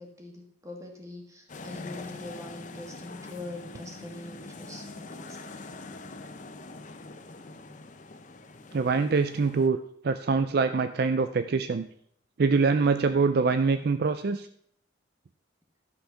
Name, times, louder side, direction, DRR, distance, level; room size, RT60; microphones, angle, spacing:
voice 1, 0.0-5.5, left 2 dB, 15° right, 1 dB, 1.9 m, -43 dB
sound 1, 1.5-9.7, left 3 dB, 40° left, 0.7 m, -44 dB
voice 2, 8.7-9.8 10.0-11.9 12.4-14.5, right 4 dB, 50° right, 10 dB, 0.4 m, -24 dB
13.0 x 5.7 x 5.8 m, 0.67 s
head